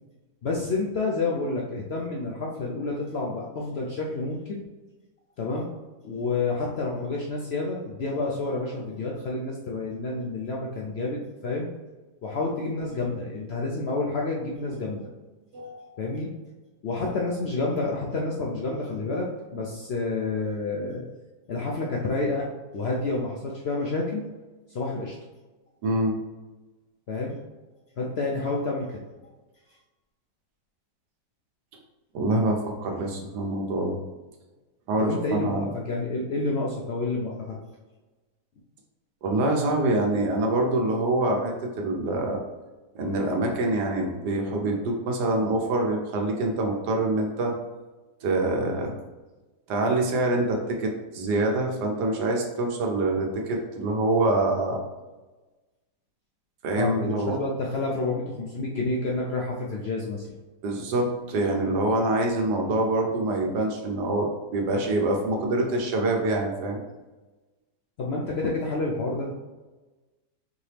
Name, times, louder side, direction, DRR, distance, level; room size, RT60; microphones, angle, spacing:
voice 1, 0.4-4.6 5.4-5.7 6.0-11.7 12.2-15.1 16.0-16.3 16.8-19.3 19.5-21.0 21.5-22.5 22.7-24.2 24.7-25.2 27.1-27.4 28.0-29.0 35.0-37.6 56.8-60.3 68.0-69.4, left 3 dB, 80° left, -2 dB, 0.5 m, -29 dB
voice 2, 15.5-15.9 25.8-26.2 32.1-34.0 34.9-35.7 39.2-42.4 42.9-47.6 48.2-49.0 49.7-54.8 56.6-57.4 60.6-66.8, right 2 dB, 80° right, 1 dB, 1.4 m, -25 dB
4.8 x 2.9 x 3.3 m, 1.2 s
omnidirectional pair, 1.8 m